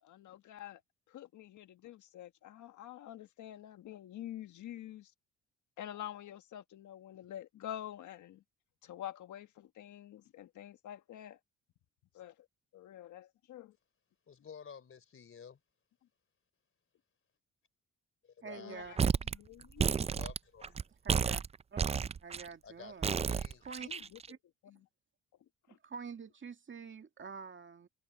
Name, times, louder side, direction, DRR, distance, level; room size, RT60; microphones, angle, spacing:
voice 1, 0.0-0.8 1.1-5.1 5.8-8.4 8.8-11.4 12.1-12.3 12.7-13.8 18.6-19.0 19.3-19.9 23.8-24.0 24.6-24.8 25.7-25.8, left 11 dB, 75° left, 1.5 m, -47 dB
voice 2, 14.3-15.6 18.2-18.9 20.1-20.8 22.6-22.9 23.2-23.7, left 6 dB, 45° left, 3.5 m, -51 dB
voice 3, 18.4-19.1 21.0-21.4 21.7-21.8 22.2-23.2 23.7-23.9 24.3-24.4 25.7-27.9, right 5 dB, 40° right, 2.3 m, -47 dB
sound 1, 19.0-19.4 19.6-20.8 21.1-22.5 23.0-24.3, right 6 dB, 20° right, 0.3 m, -31 dB
cardioid pair, 90°, 30 cm